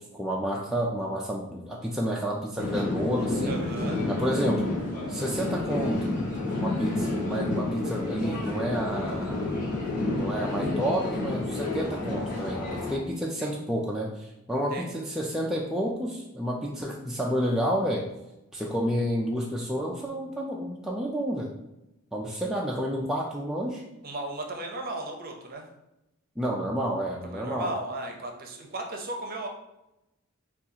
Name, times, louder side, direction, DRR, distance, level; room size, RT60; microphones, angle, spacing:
voice 1, 0.1-3.6 4.1-4.7 5.1-6.1 6.6-9.5 10.1-12.6 12.9-18.1 18.5-21.5 22.1-23.8 26.4-27.7, equal, ahead, -3 dB, 0.3 m, -30 dB
sound 1, 2.6-13.0, left 2 dB, 35° left, 1.2 m, -30 dB
voice 2, 3.4-4.0 13.4-13.5 14.7-14.9 24.0-25.6 27.2-29.5, right 2 dB, 40° right, 2 dB, 0.7 m, -35 dB
6.5 x 2.4 x 2.8 m, 0.91 s
head